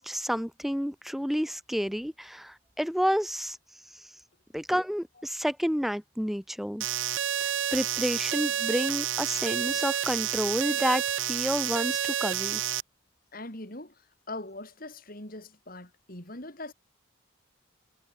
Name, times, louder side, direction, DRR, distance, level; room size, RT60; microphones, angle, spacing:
voice 1, 0.0-3.6 3.9-4.1 4.5-6.9 7.7-12.6, equal, ahead, 0.7 m, -30 dB
sound 1, 6.8-12.8, right 10 dB, 70° right, 0.7 m, -29 dB
voice 2, 13.3-13.9 14.3-16.7, left 2 dB, 45° left, 4.3 m, -41 dB
head